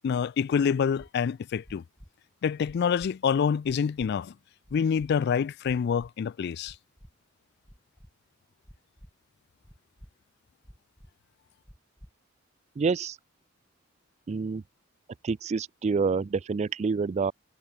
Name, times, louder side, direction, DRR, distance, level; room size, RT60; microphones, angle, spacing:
voice 1, 0.0-1.8 2.4-4.3 4.7-6.8, left 7 dB, 55° left, 0.3 m, -26 dB
sound 1, 1.0-1.1 1.6-2.1 2.6-3.1 3.6-4.1 4.6-5.1 5.6-6.1 6.6-7.1 7.6-8.1 8.6-9.1 9.6-10.1 10.6-11.1 11.6-12.1, equal, 5° left, 6.2 m, -50 dB
voice 2, 12.8-13.2 14.3-14.6 15.2-17.3, right 5 dB, 35° right, 0.3 m, -27 dB
head